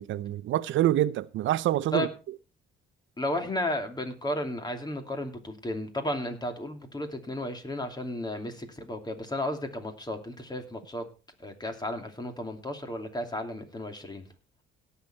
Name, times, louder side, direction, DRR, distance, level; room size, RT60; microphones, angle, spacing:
voice 1, 0.0-2.1, right 13 dB, 75° right, 0.6 m, -26 dB
voice 2, 3.2-11.0 11.4-14.3, left 1 dB, 20° left, 2.8 m, -33 dB
17.5 x 7.0 x 4.4 m
cardioid pair, 90°, 20 cm